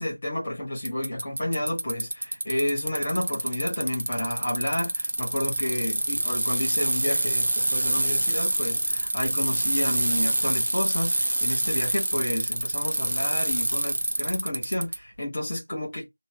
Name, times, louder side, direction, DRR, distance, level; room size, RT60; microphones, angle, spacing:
voice 1, 0.0-16.1, left 1 dB, 20° left, 1.3 m, -30 dB
Bicycle, 0.9-15.0, right 1 dB, 35° right, 0.7 m, -26 dB
3.5 x 3.0 x 3.1 m
figure-of-eight pair, 180°, 0 cm